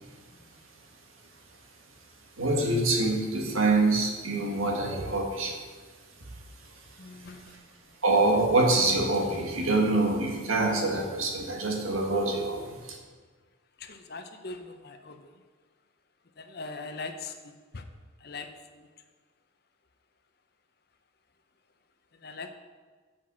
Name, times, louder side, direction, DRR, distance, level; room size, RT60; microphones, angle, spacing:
voice 1, 2.4-5.6 8.0-12.6 12.9-13.0, right 2 dB, 85° right, 1 dB, 1.7 m, -25 dB
voice 2, 7.0-7.7 13.8-15.3 16.4-17.8 18.2-18.5 18.7-18.9 22.2-22.5, left 3 dB, 50° left, 7 dB, 0.8 m, -41 dB
8.4 x 6.1 x 6.2 m, 1.4 s
head